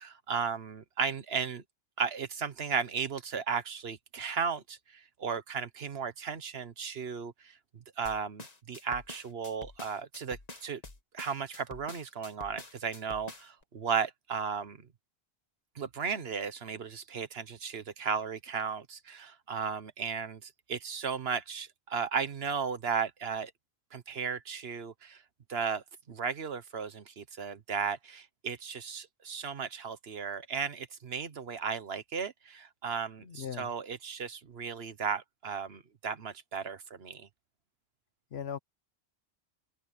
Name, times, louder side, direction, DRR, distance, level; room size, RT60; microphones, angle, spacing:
voice 1, 0.0-1.6 2.0-10.8 11.1-14.8 15.7-23.5 23.9-25.2 25.5-37.3, right 6 dB, 75° right, 1.4 m, -35 dB
sound 1, 8.0-13.6, left 2 dB, 40° left, 1.6 m, -47 dB
voice 2, 33.2-33.7 38.3-38.6, left 8 dB, 80° left, 1.2 m, -38 dB
open air
omnidirectional pair, 1.0 m